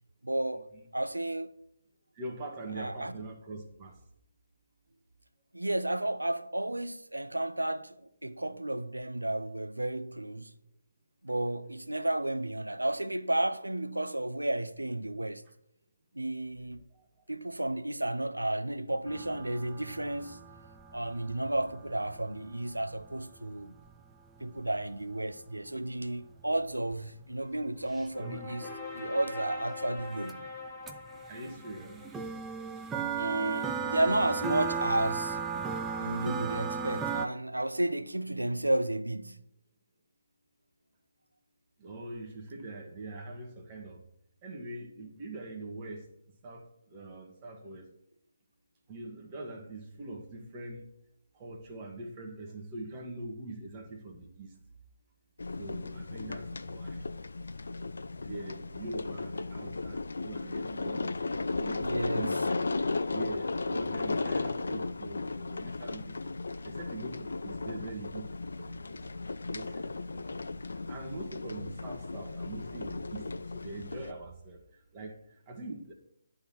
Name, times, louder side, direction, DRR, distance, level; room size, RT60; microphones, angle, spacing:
voice 1, 0.2-1.5 2.8-3.2 5.5-10.5 11.2-15.4 16.1-16.8 17.3-20.5 20.9-23.7 24.4-30.5 33.2-35.6 36.0-39.4 61.8-62.4, right 1 dB, 90° right, 0.6 m, -32 dB
voice 2, 2.1-4.0 16.9-17.1 28.5-28.6 31.3-32.3 41.8-44.0 44.4-46.1 46.4-47.9 48.9-50.9 51.3-54.6 55.6-57.0 57.8-62.3 63.0-66.3 66.6-69.1 69.5-75.9, right 2 dB, 25° right, 1.6 m, -43 dB
sound 1, 19.1-24.6 26.3-26.4 26.9-27.0 27.2-28.7 30.0-30.1 30.3-30.4 30.9-37.3, right 6 dB, 10° right, 0.5 m, -36 dB
sound 2, 27.4-33.3, left 2 dB, 10° left, 1.4 m, -44 dB
sound 3, 55.4-74.1, left 3 dB, 70° left, 0.5 m, -35 dB
10.5 x 3.8 x 5.8 m
figure-of-eight pair, 145°, 0 cm